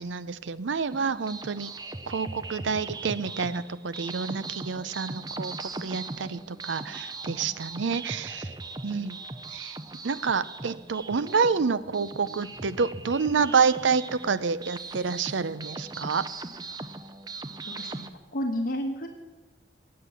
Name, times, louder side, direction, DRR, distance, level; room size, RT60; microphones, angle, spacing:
voice 1, 0.0-1.7 2.1-5.5 5.8-8.5 8.8-9.2 9.5-9.8 10.0-16.3, right 5 dB, 90° right, 16 dB, 0.6 m, -28 dB
sound 1, 0.9-18.1, right 3 dB, 20° right, 0.6 m, -39 dB
voice 2, 17.8-19.1, equal, 50° left, 3 dB, 1.3 m, -31 dB
18.0 x 7.7 x 7.0 m, 1.2 s
head